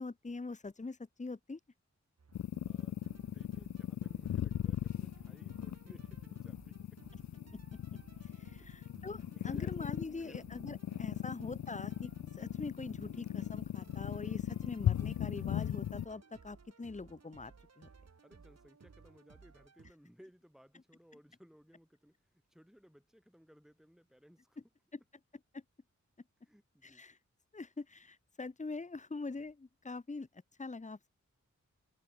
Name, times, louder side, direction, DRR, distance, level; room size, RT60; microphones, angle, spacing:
voice 1, 0.0-1.6 7.5-7.6 8.4-17.9 25.5-25.6 26.8-27.2 27.5-30.3 30.6-31.1, left 3 dB, 25° left, 1.2 m, -44 dB
sound 1, 2.2-19.9, right 5 dB, 60° right, 4.8 m, -59 dB
sound 2, 2.3-16.0, left 11 dB, 75° left, 0.5 m, -38 dB
voice 2, 2.6-7.0 8.6-8.9 9.3-10.6 11.2-11.4 18.2-22.2 22.5-24.6 26.4-27.0, equal, ahead, 7.1 m, -62 dB
wide cardioid pair, 75°, 29 cm